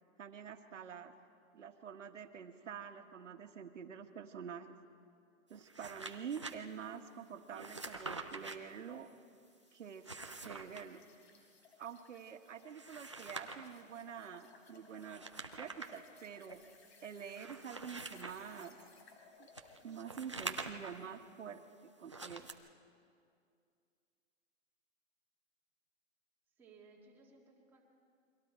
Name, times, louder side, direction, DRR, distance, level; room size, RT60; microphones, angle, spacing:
voice 1, 0.2-1.1 1.5-4.8 5.5-9.1 9.7-10.1 10.4-11.0 11.8-15.3 15.6-16.6 17.0-18.7 19.4-19.5 19.8-21.6 22.0-22.5, right 7 dB, 65° right, 6 dB, 1.7 m, -47 dB
sound 1, 5.5-6.5 7.5-8.6 9.9-10.8 12.6-13.7 15.0-16.0 16.5-16.6 17.3-18.7 19.5-21.0 22.0-22.5, right 3 dB, 25° right, 0.4 m, -46 dB
sound 2, 9.4-20.2, left 4 dB, 50° left, 3.9 m, -63 dB
voice 2, 26.5-27.8, right 4 dB, 5° right, -4 dB, 1.8 m, -61 dB
29.5 x 23.0 x 4.5 m, 2.4 s
hypercardioid pair, 170°, 40 cm